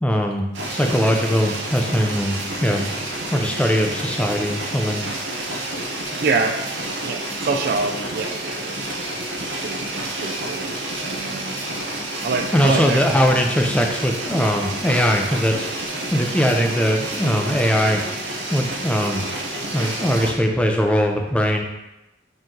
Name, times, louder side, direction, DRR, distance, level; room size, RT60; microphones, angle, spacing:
voice 1, 0.0-2.9 3.3-5.0 12.5-15.7 16.1-18.0 18.5-19.2 19.7-21.6, equal, 5° left, 2 dB, 0.4 m, -20 dB
sound 1, 0.5-20.3, right 1 dB, 75° right, 0.9 m, -29 dB
voice 2, 6.2-6.6 7.0-8.8 9.6-10.7 11.0-11.6 12.2-13.0, right 4 dB, 55° right, 5 dB, 0.4 m, -25 dB
4.5 x 3.0 x 3.7 m, 0.96 s
head